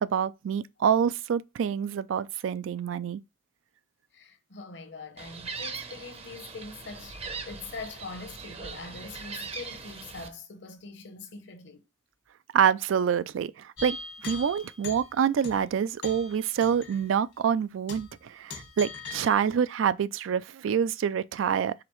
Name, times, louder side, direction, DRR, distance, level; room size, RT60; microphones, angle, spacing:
voice 1, 0.0-3.2 12.5-14.0 14.2-21.7, right 7 dB, 85° right, 0.3 m, -26 dB
voice 2, 4.1-7.2 7.5-11.8, left 3 dB, 65° left, 0.8 m, -43 dB
Gull seagull, 5.2-10.3, right 4 dB, 30° right, 0.6 m, -40 dB
sound 1, 13.8-15.1 15.4-15.7 16.0-17.1 17.4-17.5 17.9-18.2 18.5-19.4, left 3 dB, 80° left, 1.4 m, -40 dB
4.9 x 3.5 x 3.0 m
head